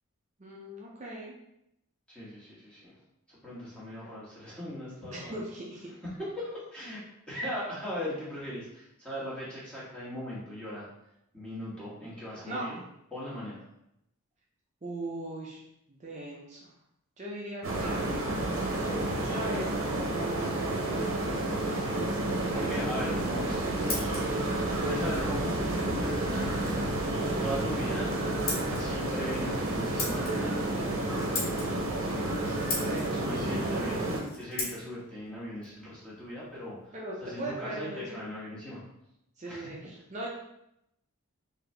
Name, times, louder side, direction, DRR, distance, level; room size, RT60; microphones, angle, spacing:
voice 1, 0.4-1.3 5.1-5.9 12.4-12.6 14.8-15.6 15.9-16.7 17.2-18.1 19.2-20.9 21.6-22.7 32.8-33.1 36.9-38.2 39.4-40.3, right 1 dB, 30° right, -4 dB, 0.6 m, -39 dB
voice 2, 2.1-2.9 3.3-5.4 6.0-10.9 11.3-12.8 13.1-13.6 22.5-24.5 24.8-26.8 27.4-28.1 28.7-36.9 37.2-38.8 39.4-39.7, equal, 5° left, -9 dB, 1.4 m, -39 dB
sound 1, 17.6-34.2, right 1 dB, 65° right, 0.8 m, -30 dB
Scissors, 23.3-36.9, left 3 dB, 45° left, 0.9 m, -41 dB
4.0 x 2.8 x 3.3 m, 0.81 s
head